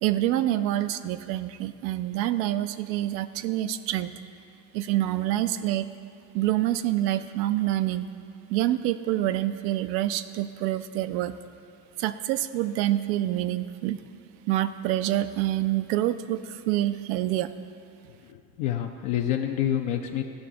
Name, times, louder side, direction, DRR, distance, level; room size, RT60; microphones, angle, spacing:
voice 1, 0.0-4.1 4.7-5.9 6.3-8.1 8.5-11.3 12.0-14.0 14.5-17.5, right 14 dB, 85° right, 11 dB, 0.6 m, -26 dB
voice 2, 18.2-20.2, left 10 dB, 70° left, 2 dB, 0.7 m, -28 dB
14.0 x 5.9 x 3.7 m, 2.5 s
hypercardioid pair, 70°, 50 cm